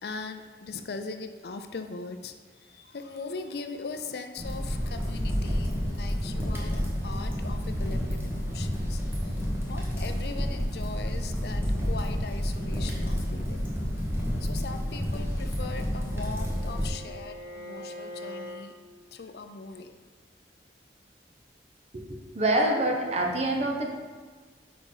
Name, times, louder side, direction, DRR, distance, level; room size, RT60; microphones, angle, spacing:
voice 1, 0.0-14.0 14.4-18.8 19.1-20.0, left 4 dB, 65° left, 8 dB, 0.4 m, -40 dB
sound 1, 4.4-16.9, equal, 15° right, 1.0 m, -30 dB
Bowed string instrument, 15.5-18.7, left 1 dB, 80° right, 1.1 m, -43 dB
voice 2, 22.3-23.8, right 1 dB, 35° right, 0 dB, 0.9 m, -25 dB
5.2 x 4.5 x 5.5 m, 1.5 s
head